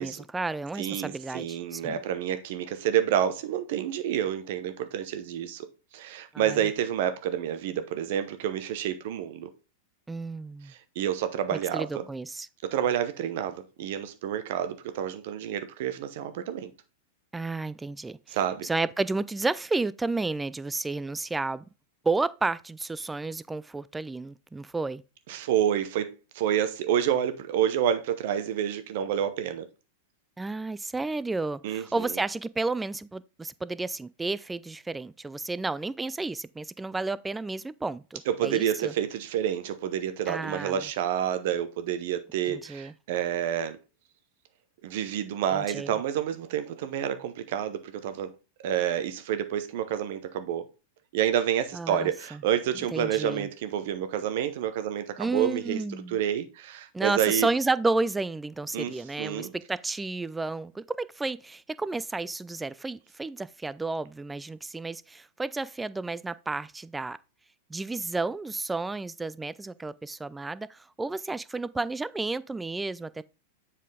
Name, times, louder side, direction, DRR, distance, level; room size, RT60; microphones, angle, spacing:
voice 1, 0.0-2.0 6.3-6.7 10.1-10.7 11.5-12.5 17.3-18.4 18.6-21.7 22.0-25.0 30.4-38.9 40.3-40.9 42.5-42.9 45.5-46.0 51.7-52.4 52.9-53.5 55.2-56.2 56.9-67.2 67.7-73.2, right 3 dB, 10° right, 0.3 m, -32 dB
voice 2, 0.8-5.7 5.9-9.5 10.9-12.0 12.6-16.7 18.3-18.7 25.3-29.7 31.6-32.2 38.3-43.8 44.8-48.3 48.6-50.7 51.1-55.8 56.1-57.5 58.7-58.9 59.2-59.5, right 10 dB, 60° right, 0.8 m, -29 dB
7.3 x 4.2 x 3.4 m
hypercardioid pair, 105°, 0 cm